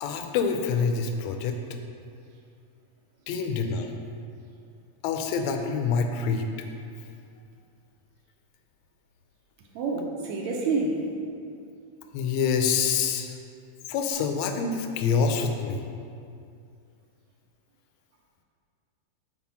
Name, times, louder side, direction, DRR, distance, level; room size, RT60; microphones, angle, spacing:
voice 1, 0.0-1.6 3.3-3.9 5.0-6.5 12.1-13.3 13.9-15.9, left 5 dB, 80° left, 5 dB, 1.7 m, -26 dB
voice 2, 9.8-11.0, right 3 dB, 75° right, 0 dB, 1.9 m, -28 dB
6.0 x 4.5 x 5.7 m, 2.4 s
omnidirectional pair, 3.4 m